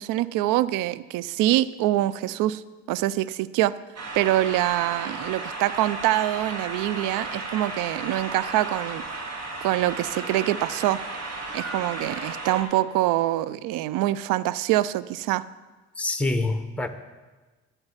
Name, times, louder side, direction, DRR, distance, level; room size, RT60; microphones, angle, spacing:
voice 1, 0.0-2.6 2.9-3.7 4.1-9.0 9.6-11.0 11.5-15.4, right 15 dB, 65° right, 18 dB, 0.6 m, -25 dB
sound 1, 4.0-12.6, right 3 dB, 45° right, 2.3 m, -34 dB
voice 2, 16.0-16.9, left 2 dB, 5° left, 9 dB, 1.1 m, -26 dB
12.5 x 6.8 x 7.3 m, 1.2 s
hypercardioid pair, 50°, 35 cm